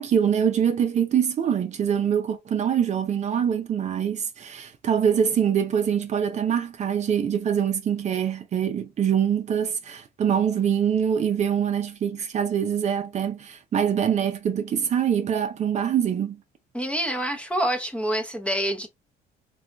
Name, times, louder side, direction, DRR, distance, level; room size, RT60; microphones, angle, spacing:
voice 1, 0.0-16.4, right 8 dB, 45° right, 0.6 m, -24 dB
voice 2, 16.7-18.9, equal, 5° left, 0.7 m, -26 dB
3.4 x 2.3 x 2.4 m
cardioid pair, 110°, 17 cm